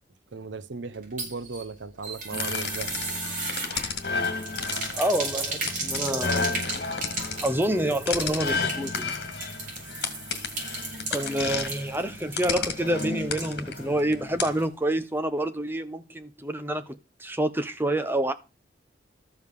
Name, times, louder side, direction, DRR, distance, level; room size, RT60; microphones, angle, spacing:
voice 1, 0.3-2.9, right 4 dB, 85° right, 0.7 m, -36 dB
sound 1, 0.9-13.9 14.2-14.3 14.6-14.7, right 3 dB, 45° right, 5.3 m, -35 dB
sound 2, 2.3-14.6, left 4 dB, 70° left, 2.1 m, -32 dB
voice 2, 5.0-6.7 7.4-9.1 11.1-18.3, right 1 dB, 10° right, 0.9 m, -28 dB
13.5 x 5.3 x 6.7 m
head